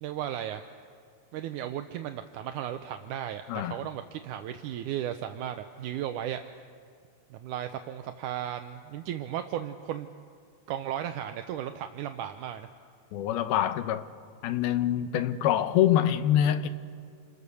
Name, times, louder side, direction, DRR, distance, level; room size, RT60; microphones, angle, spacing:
voice 1, 0.0-0.6 1.3-6.4 7.3-10.1 10.7-12.7, right 11 dB, 80° right, 1.8 m, -35 dB
voice 2, 13.1-14.1 14.4-16.7, left 11 dB, 80° left, 2.8 m, -25 dB
28.0 x 28.0 x 7.0 m
omnidirectional pair, 4.4 m